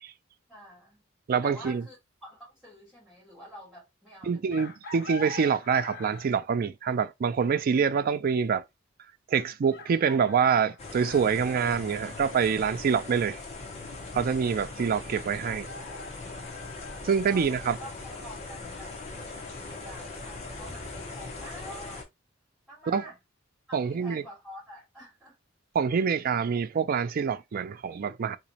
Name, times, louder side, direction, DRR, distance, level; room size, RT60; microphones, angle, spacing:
voice 1, 0.5-1.0 1.4-4.5 17.3-22.1 22.7-23.2 23.8-25.4, equal, ahead, 2.2 m, -48 dB
voice 2, 1.3-1.8 4.3-8.6 9.3-13.4 14.1-15.7 17.0-17.8 22.9-23.0 23.7-24.2 25.7-28.4, right 6 dB, 45° right, 0.4 m, -26 dB
Chicken rooster, 4.5-6.4 8.1-8.2 9.7-11.6 15.1-17.0, left 3 dB, 55° left, 0.9 m, -44 dB
sound 1, 10.8-22.0, left 3 dB, 35° left, 1.0 m, -40 dB
3.8 x 3.0 x 2.7 m
head